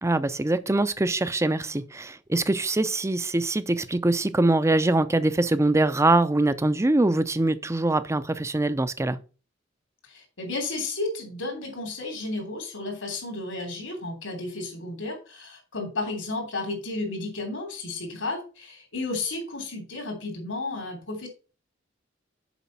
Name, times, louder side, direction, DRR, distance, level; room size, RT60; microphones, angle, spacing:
voice 1, 0.0-9.2, right 2 dB, 15° right, 0.5 m, -23 dB
voice 2, 10.0-21.3, left 2 dB, 80° left, 3.2 m, -33 dB
7.1 x 5.2 x 5.5 m
head